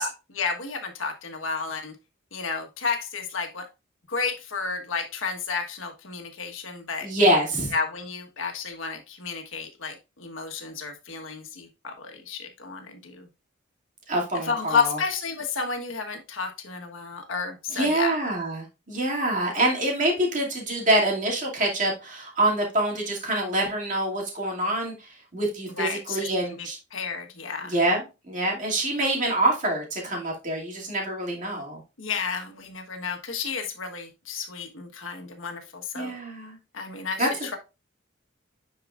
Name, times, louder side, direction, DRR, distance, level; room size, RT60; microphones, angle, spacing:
voice 1, 0.0-1.9 2.3-3.7 4.1-7.1 7.7-13.3 14.4-18.2 25.7-27.7 32.0-36.2 36.7-37.6, left 5 dB, 85° left, 1.3 m, -31 dB
voice 2, 7.0-7.7 14.1-15.0 17.7-26.8 27.7-31.8 35.9-36.6 37.2-37.3, right 1 dB, 40° right, 2.5 m, -25 dB
9.7 x 4.8 x 2.4 m
head